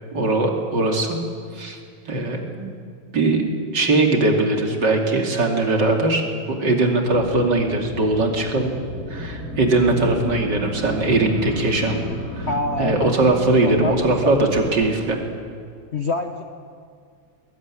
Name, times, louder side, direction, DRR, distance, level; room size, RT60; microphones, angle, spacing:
voice 1, 0.1-1.2 1.5-1.8 2.1-2.8 3.1-3.5 3.7-8.7 9.1-12.0 12.4-12.5 12.8-15.2, right 2 dB, 55° right, 2 dB, 3.3 m, -20 dB
sound 1, 7.0-15.0, left 1 dB, 90° left, 9.0 m, -33 dB
voice 2, 12.5-13.1 13.6-14.3 15.9-16.4, left 3 dB, 45° left, 6 dB, 1.0 m, -26 dB
21.0 x 20.0 x 9.9 m, 2.2 s
omnidirectional pair, 2.3 m